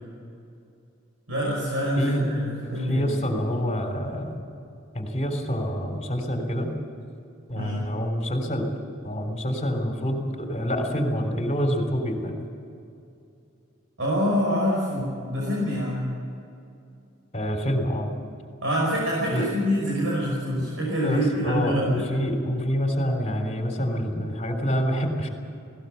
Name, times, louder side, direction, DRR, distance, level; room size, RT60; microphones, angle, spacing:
voice 1, 1.3-3.2 7.5-7.8 14.0-16.1 18.6-22.1, equal, 70° right, -4 dB, 5.7 m, -26 dB
voice 2, 2.6-4.5 4.9-6.7 7.5-8.7 9.0-12.3 17.3-18.1 19.3-19.5 20.6-20.7 21.0-25.3, equal, 30° left, 4 dB, 3.5 m, -27 dB
20.0 x 18.0 x 8.0 m, 2.6 s
head